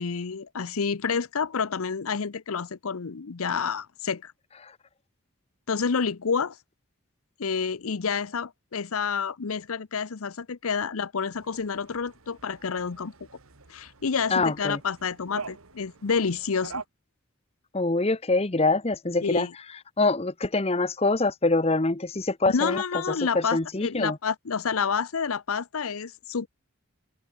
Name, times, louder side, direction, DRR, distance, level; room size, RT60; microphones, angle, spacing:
voice 1, 0.0-4.3 5.7-6.6 7.4-13.1 13.7-16.8 19.2-19.5 22.5-26.5, left 5 dB, 85° left, 0.7 m, -29 dB
sound 1, 11.3-16.8, right 4 dB, 90° right, 1.8 m, -44 dB
voice 2, 14.3-14.8 17.7-19.5 20.0-22.8 23.3-24.2, left 3 dB, 30° left, 0.9 m, -24 dB
open air
head